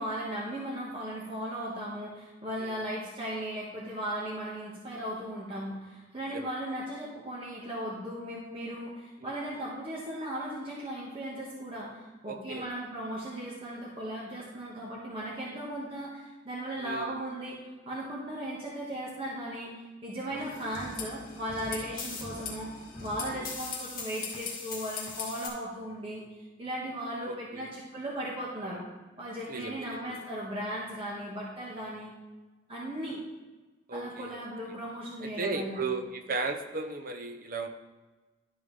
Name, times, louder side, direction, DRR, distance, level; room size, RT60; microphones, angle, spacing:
voice 1, 0.0-19.7 20.0-22.7 23.0-26.2 26.6-28.8 29.2-32.1 32.7-33.2 33.9-35.8, right 1 dB, 30° right, -6 dB, 1.3 m, -37 dB
voice 2, 12.2-12.7 16.8-17.1 20.2-20.4 23.3-23.5 27.2-27.6 29.5-30.1 33.9-34.4 35.2-37.7, right 3 dB, 45° right, 6 dB, 0.6 m, -36 dB
sound 1, 20.4-25.5, left 4 dB, 50° left, 2.0 m, -39 dB
11.5 x 5.4 x 3.2 m, 1.2 s
head